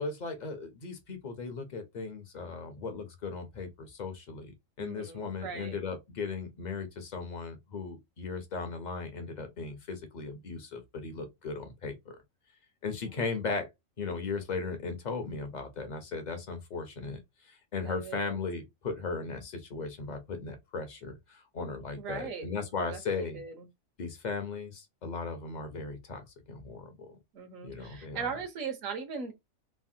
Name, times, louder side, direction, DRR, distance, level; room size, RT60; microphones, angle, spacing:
voice 1, 0.0-12.0 12.8-13.7 14.0-23.4 24.0-27.1 27.6-28.3, left 4 dB, 50° left, 0.5 m, -37 dB
voice 2, 4.8-5.8 17.8-18.4 22.0-23.7 27.3-29.3, right 6 dB, 80° right, 1.2 m, -39 dB
3.3 x 2.1 x 2.6 m
omnidirectional pair, 1.4 m